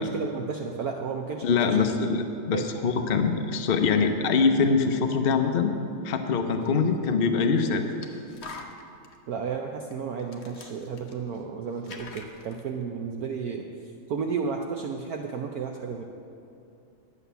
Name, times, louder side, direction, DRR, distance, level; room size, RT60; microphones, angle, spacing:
voice 1, 0.0-1.8 2.5-2.7 9.3-13.7 14.1-16.0, right 5 dB, 65° right, 3 dB, 1.0 m, -32 dB
voice 2, 1.4-5.7 6.0-7.9, left 5 dB, 75° left, 5 dB, 0.5 m, -24 dB
sound 1, 6.6-6.7 7.8-9.2 9.9-10.0 10.2-11.5 11.7-12.6, left 4 dB, 45° left, 0.9 m, -44 dB
11.0 x 8.2 x 6.8 m, 2.6 s
omnidirectional pair, 2.0 m